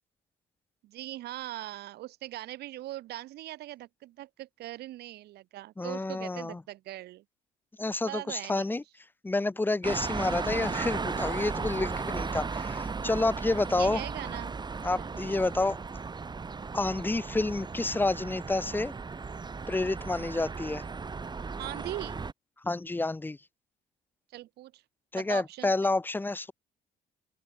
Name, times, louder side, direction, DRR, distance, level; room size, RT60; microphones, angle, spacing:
voice 1, 0.8-7.2 8.1-8.8 13.7-14.6 15.0-15.1 21.6-22.2 24.3-24.8 25.1-25.9, right 15 dB, 75° right, 1.9 m, -40 dB
voice 2, 5.8-6.6 7.8-8.8 9.2-14.0 14.8-15.8 16.7-18.9 19.7-20.8 22.6-23.4 25.1-26.5, left 2 dB, 10° left, 0.9 m, -29 dB
sound 1, 9.8-22.3, right 4 dB, 25° right, 3.8 m, -36 dB
open air
cardioid pair, 110°, 17 cm